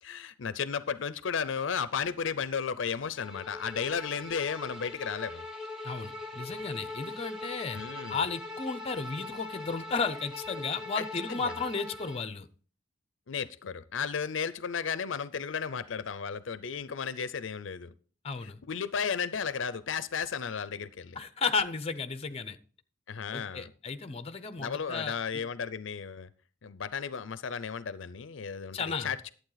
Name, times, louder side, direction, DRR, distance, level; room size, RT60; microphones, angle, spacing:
voice 1, 0.0-5.5 7.7-8.2 11.0-11.1 11.3-11.5 13.3-17.9 18.6-21.2 23.1-23.7 24.6-26.3 26.6-29.3, left 6 dB, 70° left, 15 dB, 0.5 m, -34 dB
Bowed string instrument, 3.1-12.3, left 2 dB, ahead, 1.4 m, -41 dB
voice 2, 5.8-7.8 8.1-12.5 18.2-18.6 21.2-22.6 23.3-25.2 28.7-29.1, left 4 dB, 30° left, 12 dB, 0.7 m, -33 dB
11.5 x 8.1 x 4.0 m, 0.41 s
head